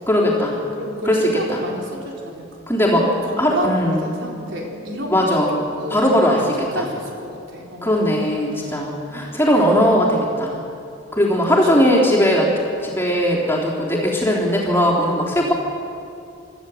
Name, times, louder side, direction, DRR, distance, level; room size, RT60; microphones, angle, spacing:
voice 1, 0.1-0.6 1.0-1.6 2.7-3.1 3.4-4.2 5.1-5.6 5.9-6.9 7.8-10.6 11.1-15.5, equal, 10° left, -4 dB, 3.5 m, -19 dB
voice 2, 0.8-2.5 2.9-3.7 4.0-5.3 5.8-6.5 6.7-8.1 8.7-8.8 11.7-11.9, equal, 65° right, -1 dB, 3.9 m, -30 dB
25.0 x 14.0 x 8.0 m, 2.6 s
head